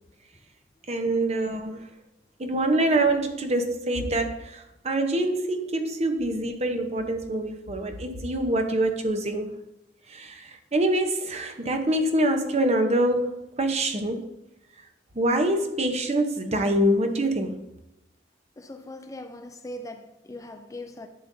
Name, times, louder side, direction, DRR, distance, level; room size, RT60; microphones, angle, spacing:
voice 1, 0.9-1.8 2.4-9.5 10.1-14.2 15.1-17.6, right 1 dB, 35° right, 0.8 m, -25 dB
voice 2, 18.6-21.1, left 1 dB, 20° left, 0.4 m, -40 dB
11.0 x 6.9 x 2.7 m
head